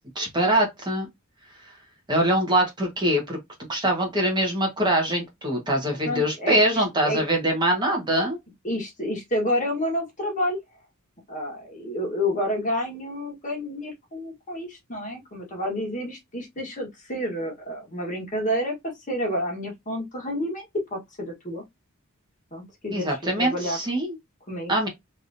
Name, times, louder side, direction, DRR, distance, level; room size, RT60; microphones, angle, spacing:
voice 1, 0.1-1.1 2.1-3.4 3.7-8.4 22.9-24.2 24.7-24.9, right 1 dB, 20° right, 1.3 m, -23 dB
voice 2, 6.0-7.2 8.6-10.6 11.3-21.6 22.5-23.8 24.5-24.7, left 1 dB, 35° left, 1.4 m, -29 dB
3.5 x 2.9 x 2.6 m
head